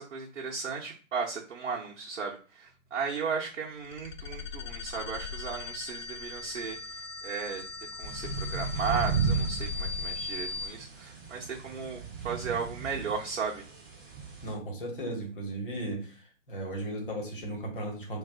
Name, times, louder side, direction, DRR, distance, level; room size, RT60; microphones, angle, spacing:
voice 1, 0.0-7.6 8.0-13.6, right 5 dB, 60° right, -2 dB, 0.7 m, -35 dB
sound 1, 3.8-10.7, left 5 dB, 70° left, 0.6 m, -38 dB
sound 2, 8.0-14.5, right 6 dB, 15° right, 0.6 m, -35 dB
voice 2, 14.4-16.2 16.5-18.2, right 1 dB, 40° left, 0 dB, 1.1 m, -36 dB
2.6 x 2.4 x 3.4 m, 0.37 s
figure-of-eight pair, 145°, 39 cm